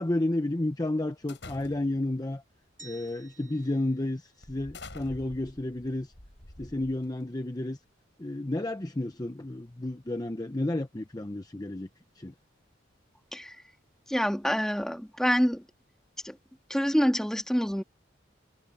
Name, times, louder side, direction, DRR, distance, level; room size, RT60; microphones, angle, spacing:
voice 1, 0.0-2.4 2.8-6.1 6.6-7.8 8.2-11.9 12.2-12.3, left 1 dB, 20° left, 0.8 m, -31 dB
sound 1, 1.3-2.1 2.9-3.2 3.6-3.8 4.4-7.3, left 2 dB, 65° left, 7.2 m, -47 dB
sound 2, 2.8-5.0, right 3 dB, 45° right, 7.8 m, -54 dB
voice 2, 14.1-15.6 16.2-16.3 16.7-17.8, equal, 5° left, 2.4 m, -26 dB
head